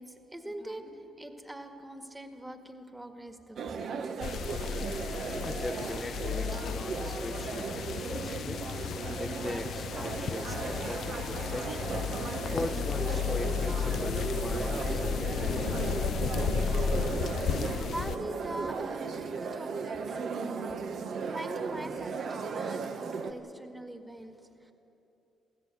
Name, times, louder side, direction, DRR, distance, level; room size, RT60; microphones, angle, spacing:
voice 1, 0.0-3.9 17.7-24.7, right 1 dB, 10° right, 6 dB, 1.8 m, -43 dB
sound 1, 3.6-23.3, right 5 dB, 65° right, 1.4 m, -36 dB
sound 2, 4.2-18.2, left 8 dB, 65° left, 0.5 m, -33 dB
voice 2, 5.4-8.6 9.2-12.0 12.5-16.8, left 2 dB, 15° left, 10 dB, 0.9 m, -41 dB
23.0 x 16.0 x 8.3 m, 2.9 s
cardioid pair, 90°, 0 cm